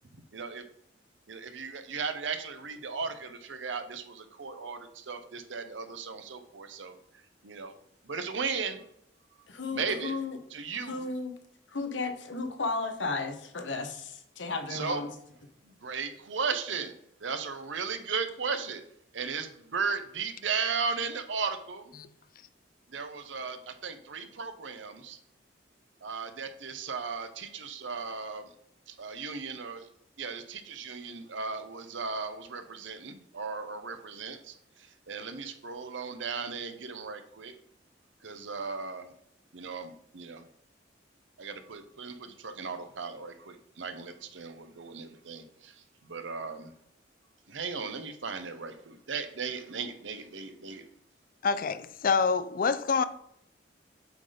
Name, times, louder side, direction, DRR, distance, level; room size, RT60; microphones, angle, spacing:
voice 1, 0.1-0.6 1.3-6.9 7.4-7.7 8.0-8.8 9.7-10.1 10.5-11.1 14.7-15.0 15.7-16.9 17.2-18.8 19.1-21.9 22.9-25.2 26.0-28.4 28.9-29.9 30.2-34.5 35.1-37.6 38.2-39.1 39.5-40.5 41.4-45.7 46.1-46.7 47.5-50.8, right 5 dB, 90° right, 0.8 m, -36 dB
voice 2, 9.5-10.4 10.7-11.3 11.7-15.1, left 3 dB, 80° left, 1.0 m, -34 dB
voice 3, 51.4-53.0, left 5 dB, 50° left, 0.4 m, -26 dB
8.1 x 4.0 x 4.9 m
head